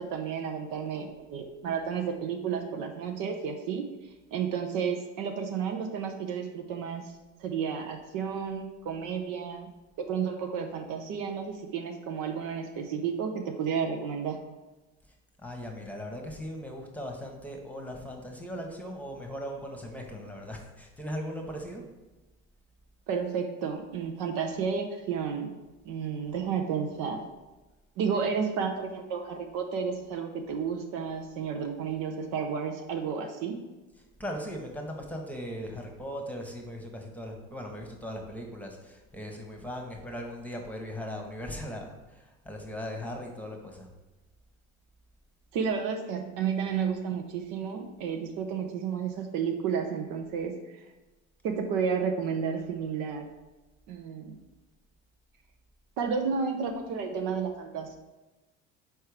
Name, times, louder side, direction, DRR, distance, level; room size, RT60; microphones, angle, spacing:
voice 1, 0.0-3.8 4.3-7.1 7.4-9.7 10.0-14.4 23.1-25.5 25.8-27.2 28.0-33.6 45.5-50.8 51.4-53.3 53.9-54.4 56.0-58.0, right 6 dB, 60° right, 4 dB, 0.8 m, -32 dB
voice 2, 15.4-21.8 33.9-43.9, equal, 5° left, 1 dB, 1.2 m, -39 dB
4.6 x 4.5 x 4.8 m, 1.1 s
hypercardioid pair, 70°, 37 cm